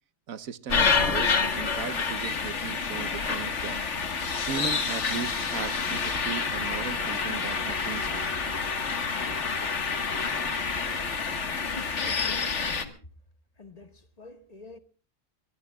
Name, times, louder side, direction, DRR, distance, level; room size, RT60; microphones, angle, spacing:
voice 1, 0.3-3.8 4.5-8.3, right 7 dB, 75° right, 1.3 m, -37 dB
sound 1, 0.7-12.8, left 5 dB, 55° left, 1.9 m, -28 dB
voice 2, 11.6-13.0 13.6-14.8, left 3 dB, 30° left, 1.6 m, -46 dB
23.5 x 21.5 x 2.3 m
omnidirectional pair, 1.5 m